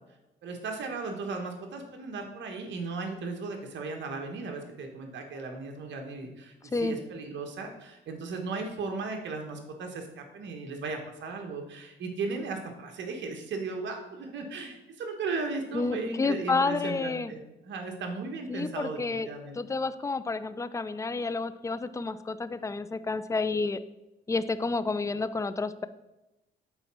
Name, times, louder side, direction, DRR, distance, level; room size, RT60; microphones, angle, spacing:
voice 1, 0.4-19.0 19.3-19.6, right 4 dB, 65° right, 3 dB, 1.3 m, -36 dB
voice 2, 15.7-17.3 18.5-19.3 19.5-23.8 24.3-25.9, left 3 dB, 15° left, 13 dB, 0.4 m, -30 dB
8.0 x 4.1 x 6.1 m, 0.99 s
cardioid pair, 90°, 20 cm